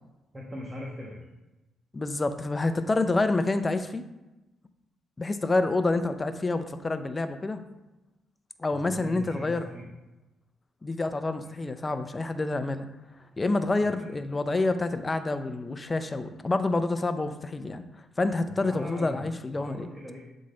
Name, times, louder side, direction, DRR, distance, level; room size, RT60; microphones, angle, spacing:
voice 1, 0.3-1.3 8.7-9.9 11.4-11.6 13.8-14.1 18.6-20.2, equal, 20° right, -2 dB, 1.2 m, -41 dB
voice 2, 1.9-4.0 5.2-7.6 8.6-9.6 10.8-12.9 13.4-17.8 18.2-19.9, left 2 dB, 25° left, 9 dB, 0.5 m, -28 dB
8.4 x 3.9 x 3.8 m, 1.0 s
cardioid pair, 90°, 0 cm